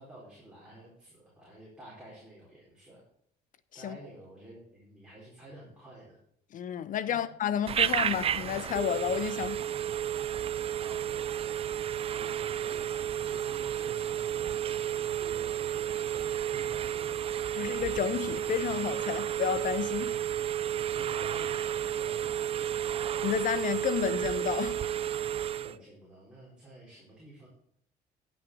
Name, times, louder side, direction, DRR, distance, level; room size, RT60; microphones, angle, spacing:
voice 1, 0.0-3.0 3.7-6.2 7.1-7.2 7.8-7.9 9.3-9.5 10.7-11.3 11.8-17.6 20.8-22.9 25.5-27.5, right 1 dB, 5° right, 4.3 m, -51 dB
voice 2, 6.5-9.6 17.5-20.2 23.2-24.9, left 9 dB, 50° left, 0.5 m, -31 dB
Telephone, 7.7-25.8, right 10 dB, 35° right, 0.4 m, -32 dB
10.5 x 6.1 x 6.2 m
cardioid pair, 110°, 17 cm